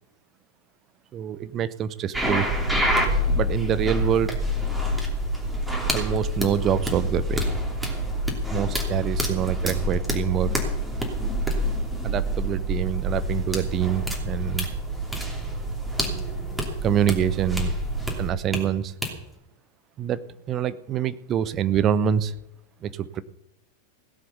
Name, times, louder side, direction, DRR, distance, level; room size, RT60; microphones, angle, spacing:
voice 1, 1.1-2.5 3.3-4.4 5.9-7.6 8.5-10.5 12.0-14.7 16.8-17.8 18.2-18.9 20.0-22.3 22.8-23.2, right 9 dB, 30° right, 16 dB, 0.7 m, -26 dB
sound 1, 2.1-18.6 19.0-19.1, equal, 5° right, 2.9 m, -27 dB
17.0 x 7.8 x 6.9 m, 0.86 s
figure-of-eight pair, 90°, 0 cm